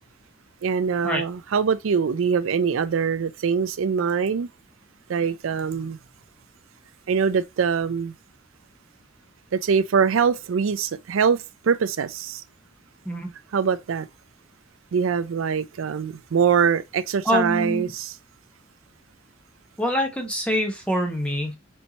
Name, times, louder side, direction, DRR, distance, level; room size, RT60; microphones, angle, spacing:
voice 1, 0.6-4.5 5.1-6.0 7.1-8.1 9.5-11.4 11.6-12.4 13.5-14.1 14.9-18.1, right 6 dB, 90° right, 0.4 m, -23 dB
voice 2, 17.2-17.9 19.8-21.6, equal, 5° left, 1.1 m, -25 dB
4.4 x 4.3 x 2.8 m
head